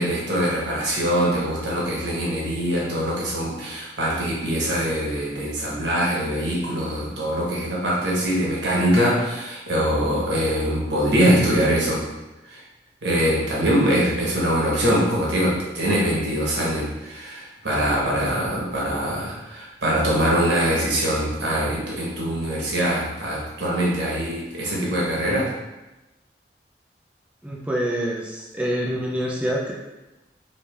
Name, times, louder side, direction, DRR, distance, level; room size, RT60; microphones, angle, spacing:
voice 1, 0.0-12.0 12.4-12.6 13.0-25.5, equal, 90° right, -5 dB, 1.2 m, -23 dB
voice 2, 27.4-29.7, equal, 5° right, -4 dB, 0.4 m, -26 dB
3.2 x 2.8 x 3.3 m, 1.0 s
head